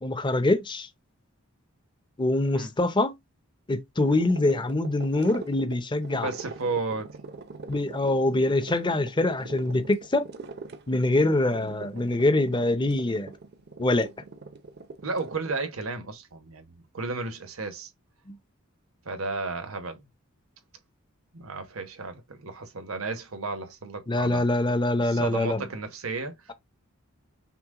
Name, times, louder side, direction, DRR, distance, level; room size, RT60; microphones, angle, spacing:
voice 1, 0.0-0.9 2.2-3.1 3.7-6.3 7.7-10.3 10.9-13.3 13.8-14.1 18.3-18.4 24.1-25.6, left 2 dB, 20° left, 0.6 m, -24 dB
sound 1, 4.0-15.6, right 3 dB, 50° right, 0.6 m, -43 dB
voice 2, 6.1-7.2 12.0-12.1 15.0-17.9 19.0-20.1 21.3-24.4 25.0-26.5, right 3 dB, 85° right, 1.1 m, -33 dB
5.9 x 2.2 x 3.7 m
head